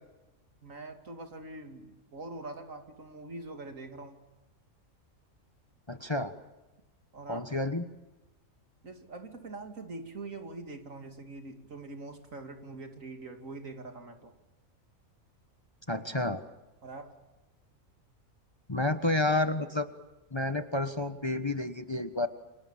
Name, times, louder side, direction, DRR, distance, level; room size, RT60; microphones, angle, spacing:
voice 1, 0.6-4.2 7.1-7.4 8.8-14.3 16.8-17.1, right 2 dB, 70° right, 6 dB, 2.9 m, -43 dB
voice 2, 5.9-6.3 7.3-7.8 15.9-16.4 18.7-19.9 20.3-22.3, left 2 dB, 20° left, 10 dB, 1.2 m, -30 dB
29.0 x 25.5 x 7.3 m, 1.1 s
omnidirectional pair, 1.4 m